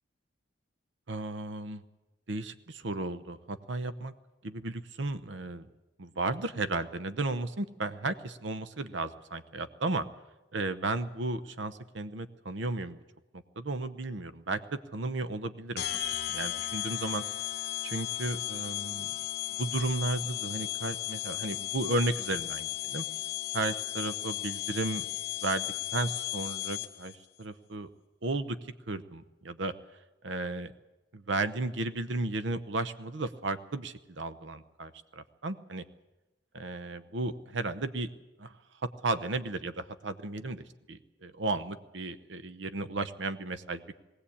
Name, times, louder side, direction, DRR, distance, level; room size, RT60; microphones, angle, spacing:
voice 1, 1.1-1.8 2.3-4.1 4.4-5.7 6.0-10.1 10.5-13.0 13.6-14.6 14.9-16.0 16.3-17.2 17.8-19.1 19.6-23.0 23.5-25.0 25.4-25.7 25.9-27.1 27.4-27.9 28.2-28.6 28.9-29.7 30.2-30.7 31.1-35.8 36.5-38.1 38.4-38.5 38.8-43.8, right 2 dB, 65° right, 12 dB, 0.8 m, -34 dB
sound 1, 15.8-27.2, left 14 dB, 50° left, 1.1 m, -35 dB
20.0 x 17.0 x 8.6 m, 1.1 s
head